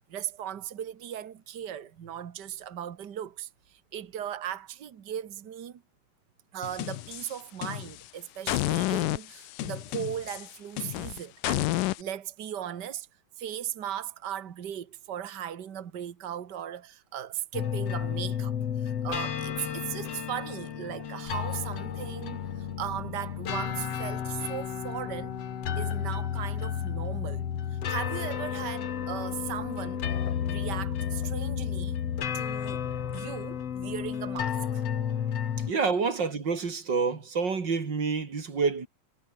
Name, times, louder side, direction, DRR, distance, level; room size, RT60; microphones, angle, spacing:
voice 1, 0.1-5.8 6.5-13.1 13.4-25.4 25.8-27.4 27.7-30.1 30.4-32.0 32.3-32.8 33.1-34.8 35.2-35.5, right 10 dB, 70° right, 1.0 m, -38 dB
sound 1, 6.6-8.1 8.5-12.0, left 17 dB, 75° left, 2.3 m, -31 dB
sound 2, 17.5-35.7, left 8 dB, 50° left, 2.5 m, -32 dB
voice 2, 35.7-38.9, right 5 dB, 30° right, 3.3 m, -28 dB
omnidirectional pair, 4.0 m